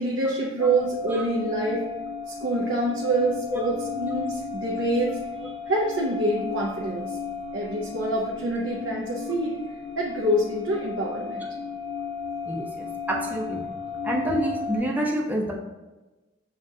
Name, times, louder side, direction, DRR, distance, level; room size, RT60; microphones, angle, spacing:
voice 1, 0.0-1.8 2.3-7.2 7.5-9.6 10.0-11.4, right 1 dB, 75° right, -3 dB, 0.6 m, -26 dB
sound 1, 0.6-14.8, left 6 dB, 40° left, 0.6 m, -34 dB
voice 2, 12.5-13.6 14.0-15.5, right 1 dB, 10° right, -1 dB, 0.6 m, -28 dB
7.2 x 2.4 x 2.7 m, 1.1 s
head